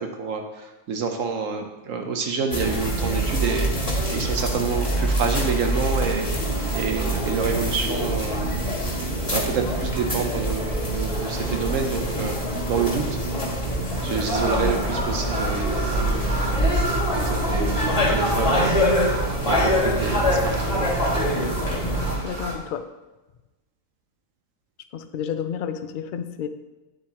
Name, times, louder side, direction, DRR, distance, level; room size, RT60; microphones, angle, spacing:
voice 1, 0.0-8.6 9.3-12.4 12.7-13.1 14.0-19.2 19.5-20.9, right 5 dB, 80° right, 4 dB, 1.2 m, -28 dB
sound 1, 2.5-22.2, equal, 25° left, 1.7 m, -25 dB
sound 2, 14.3-22.5, right 1 dB, 30° right, 1.5 m, -28 dB
voice 2, 21.8-22.8 24.9-26.5, left 8 dB, 60° left, 9 dB, 0.5 m, -31 dB
9.5 x 7.8 x 2.9 m, 1.1 s
omnidirectional pair, 1.4 m